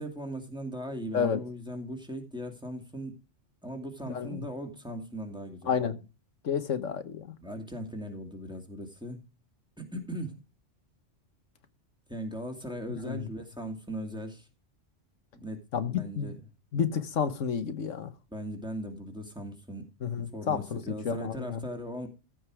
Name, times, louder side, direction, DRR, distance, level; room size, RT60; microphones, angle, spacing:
voice 1, 0.0-3.2 3.6-5.7 7.4-9.2 9.8-10.4 12.1-14.5 15.4-15.6 15.9-16.4 18.3-19.9 20.3-22.1, equal, 5° right, 2.5 m, -38 dB
voice 2, 4.1-4.4 5.7-6.0 6.4-7.3 13.0-13.3 15.7-16.3 16.7-18.1 20.0-21.6, left 7 dB, 85° left, 1.5 m, -30 dB
15.0 x 5.3 x 4.8 m
omnidirectional pair, 1.3 m